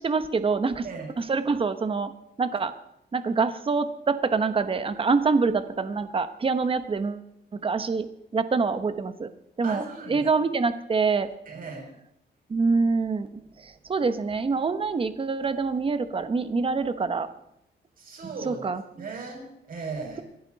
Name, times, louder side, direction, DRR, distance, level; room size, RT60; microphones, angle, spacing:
voice 1, 0.0-0.9 1.2-2.1 2.4-2.7 3.1-7.2 7.5-8.1 8.3-9.3 9.6-11.3 12.5-13.3 13.6-17.3 18.4-18.8, right 4 dB, 30° right, 10 dB, 1.1 m, -25 dB
voice 2, 9.6-10.2 11.5-11.8 18.0-18.7 19.0-20.2, right 4 dB, 55° right, 0 dB, 6.4 m, -37 dB
26.0 x 11.0 x 4.1 m, 0.81 s
cardioid pair, 130°, 18 cm